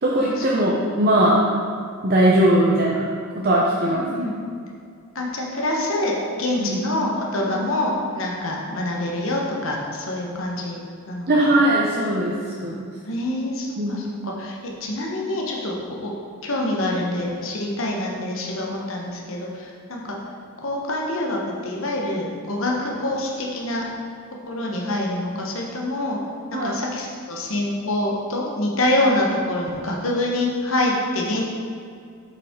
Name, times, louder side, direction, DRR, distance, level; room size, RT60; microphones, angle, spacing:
voice 1, 0.0-1.4 2.0-3.0 3.4-4.0 6.6-6.8 7.4-7.7 11.3-12.3 12.6-12.8 13.8-14.0 26.5-26.7, right 1 dB, 45° right, -4 dB, 0.7 m, -19 dB
voice 2, 3.9-4.3 5.1-10.8 11.1-11.3 13.0-16.1 16.4-20.2 20.6-23.9 24.5-26.2 26.5-31.4, left 1 dB, 60° left, -1 dB, 1.0 m, -26 dB
7.2 x 5.4 x 3.7 m, 2.3 s
head